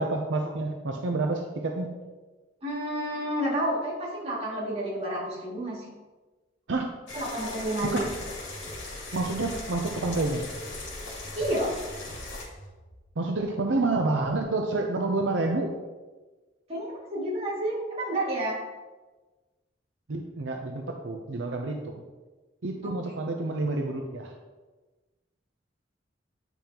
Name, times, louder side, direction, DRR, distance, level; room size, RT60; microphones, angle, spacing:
voice 1, 0.0-1.9 6.7-6.9 7.8-8.1 9.1-10.4 13.2-15.7 20.1-21.9 22.6-24.3, right 2 dB, 75° right, 3 dB, 0.6 m, -28 dB
voice 2, 2.6-5.9 7.1-8.1 11.3-11.7 16.7-18.6 22.8-23.2, right 1 dB, 35° right, -6 dB, 2.3 m, -30 dB
sound 1, 7.1-12.4, left 2 dB, 70° left, 2.3 m, -39 dB
sound 2, 7.9-13.0, equal, 40° left, 2.0 m, -45 dB
9.1 x 5.3 x 2.9 m, 1.2 s
head